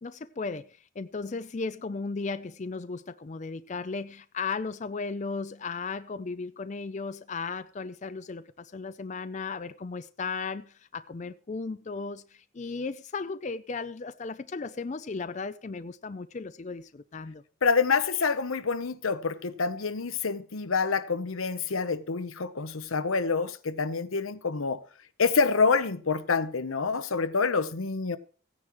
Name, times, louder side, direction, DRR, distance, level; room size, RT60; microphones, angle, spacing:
voice 1, 0.0-17.4, left 4 dB, 35° left, 0.4 m, -36 dB
voice 2, 17.6-24.8 25.2-28.2, left 4 dB, 85° left, 0.8 m, -27 dB
16.5 x 9.6 x 3.1 m
head